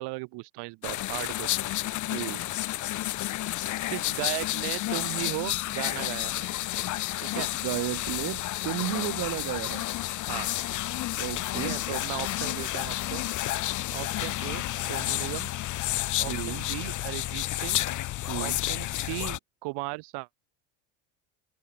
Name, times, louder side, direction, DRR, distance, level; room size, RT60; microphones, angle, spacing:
voice 1, 0.0-1.7 3.9-6.5 7.2-7.5 10.3-10.5 11.5-13.2 13.9-15.5 16.2-17.8 18.4-20.3, right 24 dB, 65° right, 1.5 m, -37 dB
sound 1, 0.8-19.4, left 15 dB, 45° left, 0.8 m, -31 dB
voice 2, 2.1-2.5 7.3-9.9 11.2-11.8 16.3-16.6 18.3-18.6, right 17 dB, 50° right, 0.9 m, -33 dB
supercardioid pair, 90°, 44 cm